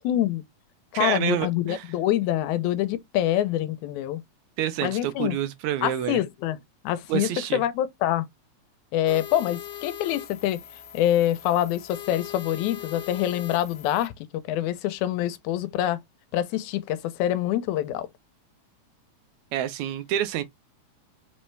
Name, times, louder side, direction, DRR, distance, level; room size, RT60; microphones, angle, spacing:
voice 1, 0.0-0.4 0.9-4.2 4.8-5.4 5.8-6.6 6.8-8.3 8.9-10.6 10.9-16.0 16.3-18.1, left 12 dB, 90° left, 2.0 m, -25 dB
voice 2, 0.9-1.8 4.6-6.2 7.1-7.6 19.5-20.4, right 11 dB, 85° right, 2.0 m, -28 dB
sound 1, 9.1-14.1, left 11 dB, 70° left, 1.8 m, -40 dB
4.9 x 3.2 x 3.2 m
omnidirectional pair, 3.3 m